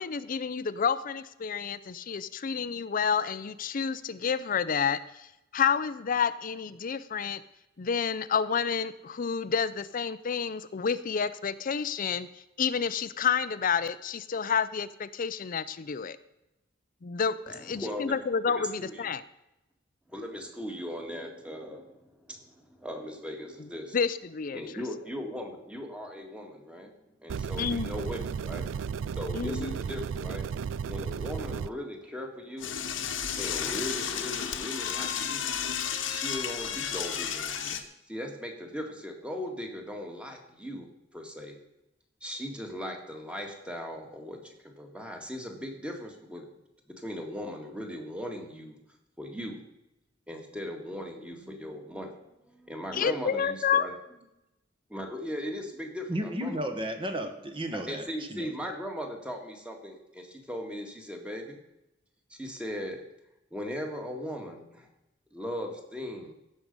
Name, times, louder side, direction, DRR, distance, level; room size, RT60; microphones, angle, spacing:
voice 1, 0.0-5.3 5.5-7.4 7.8-12.3 12.6-16.2 17.0-19.2 23.9-24.6 27.6-27.9 29.3-29.7 52.9-53.9, left 6 dB, 45° left, 15 dB, 0.5 m, -29 dB
voice 2, 17.5-19.1 20.1-24.0 24.5-26.9 27.2-28.6 29.0-30.4 30.9-33.0 33.3-35.4 36.1-37.7 38.1-41.5 42.2-46.5 47.0-48.8 49.2-49.6 50.3-53.9 54.9-56.6 57.7-61.6 62.3-63.0 63.5-64.9 65.3-66.3, equal, 5° right, 2 dB, 1.8 m, -38 dB
sound 1, 27.3-31.7, right 6 dB, 85° right, 0.3 m, -34 dB
Door / Toilet flush, 32.6-37.8, left 8 dB, 85° left, 1.2 m, -32 dB
voice 3, 56.1-58.7, right 1 dB, 30° right, 6 dB, 1.5 m, -34 dB
16.0 x 6.5 x 5.4 m, 0.91 s
head